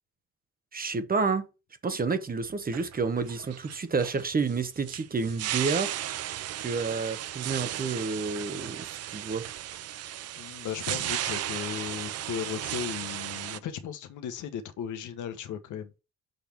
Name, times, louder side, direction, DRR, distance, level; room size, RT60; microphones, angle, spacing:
voice 1, 0.7-1.4 1.8-5.9 6.6-9.4, right 4 dB, 30° right, 1.0 m, -29 dB
sound 1, 2.4-13.6, right 12 dB, 55° right, 0.5 m, -35 dB
voice 2, 10.0-15.9, left 9 dB, 80° left, 1.1 m, -36 dB
6.6 x 3.4 x 5.9 m
cardioid pair, 90°, 30 cm